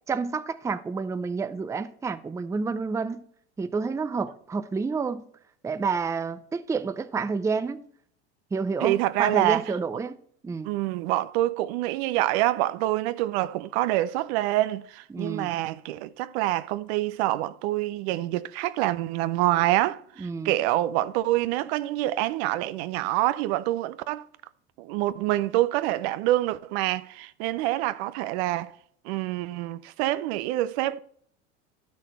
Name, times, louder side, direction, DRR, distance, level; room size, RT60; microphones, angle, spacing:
voice 1, 0.1-3.2 3.6-5.2 5.6-7.8 8.5-10.2 10.4-10.7 15.1-15.5 20.2-20.5, right 4 dB, 10° right, 0.5 m, -29 dB
voice 2, 8.8-9.6 9.9-10.0 10.6-24.2 24.8-28.7 29.0-31.0, right 15 dB, 65° right, 0.6 m, -26 dB
11.5 x 6.2 x 4.2 m
hypercardioid pair, 95°, 35 cm